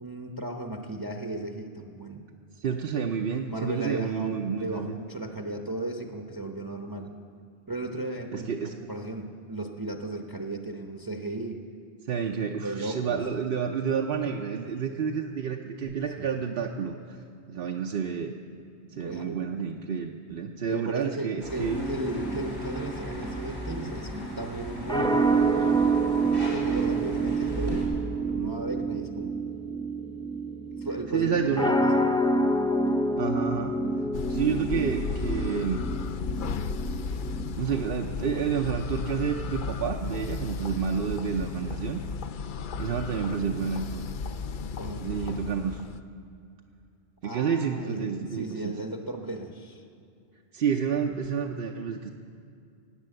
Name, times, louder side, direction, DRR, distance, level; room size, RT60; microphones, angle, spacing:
voice 1, 0.0-2.2 3.5-7.1 7.7-11.6 12.6-13.2 16.2-16.3 19.0-19.4 20.7-25.5 26.4-27.9 28.3-29.4 30.8-32.1 34.4-34.7 44.8-45.1 47.2-49.8, right 2 dB, 20° right, 3 dB, 0.8 m, -35 dB
voice 2, 2.6-5.0 8.3-8.8 12.1-17.2 17.5-18.3 19.0-21.8 31.1-31.8 33.2-33.8 34.3-35.9 37.1-37.2 37.6-42.0 42.8-44.0 45.0-45.9 47.2-48.7 50.5-52.1, right 7 dB, 65° right, 2 dB, 0.9 m, -29 dB
sound 1, 21.4-27.8, equal, 85° left, 4.2 m, -38 dB
sound 2, 21.7-37.5, right 2 dB, 10° left, 0.3 m, -28 dB
sound 3, 34.1-46.0, left 5 dB, 60° left, 0.7 m, -34 dB
17.5 x 9.3 x 7.7 m, 2.5 s
omnidirectional pair, 1.1 m